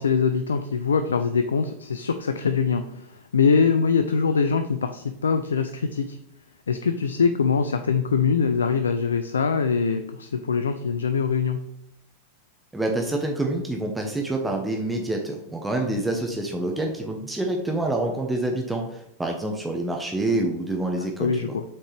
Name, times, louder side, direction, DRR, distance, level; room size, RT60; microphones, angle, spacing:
voice 1, 0.0-6.2 6.7-11.7 21.2-21.6, left 5 dB, 70° left, 9 dB, 0.4 m, -23 dB
voice 2, 12.7-21.6, right 2 dB, 5° right, 1 dB, 0.8 m, -27 dB
7.3 x 4.4 x 3.2 m, 0.78 s
figure-of-eight pair, 90°, 0 cm